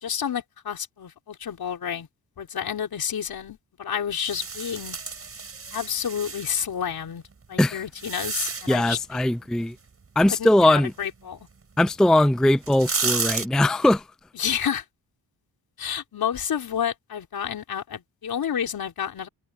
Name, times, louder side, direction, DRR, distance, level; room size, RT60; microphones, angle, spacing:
voice 1, 0.0-2.1 2.4-5.0 5.7-7.2 7.5-9.0 10.3-11.4 14.3-14.8 15.8-19.3, left 8 dB, 60° left, 4.1 m, -30 dB
sound 1, 4.3-6.5 7.3-8.9 11.9-12.0 12.5-13.5, right 5 dB, 35° right, 6.1 m, -31 dB
voice 2, 8.7-9.7 10.2-10.9 11.8-14.0, left 1 dB, ahead, 0.5 m, -20 dB
wide cardioid pair, 130°, 40 cm